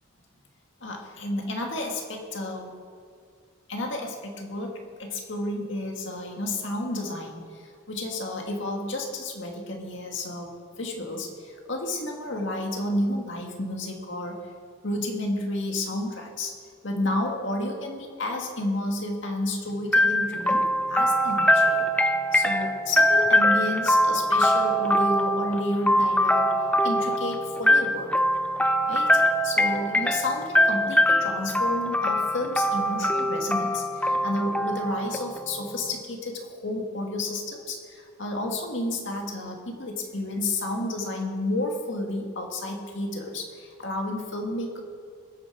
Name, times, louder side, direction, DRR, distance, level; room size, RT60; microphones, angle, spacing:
voice 1, 0.8-2.8 3.7-14.4 14.8-16.6 16.8-21.9 22.3-26.6 26.8-28.1 28.8-44.8, left 1 dB, 60° left, 1 dB, 2.1 m, -31 dB
sound 1, 19.9-35.7, equal, 5° left, 0.5 m, -23 dB
21.0 x 9.9 x 4.7 m, 2.2 s
head